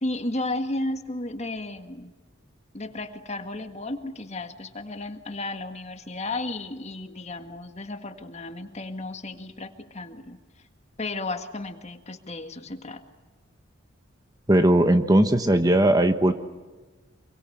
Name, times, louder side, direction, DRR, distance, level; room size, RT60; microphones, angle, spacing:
voice 1, 0.0-2.1 2.7-10.4 11.0-13.0, left 2 dB, 35° left, 7 dB, 1.8 m, -33 dB
voice 2, 14.5-16.3, right 1 dB, 20° right, 8 dB, 1.2 m, -18 dB
26.5 x 23.5 x 8.7 m, 1.3 s
head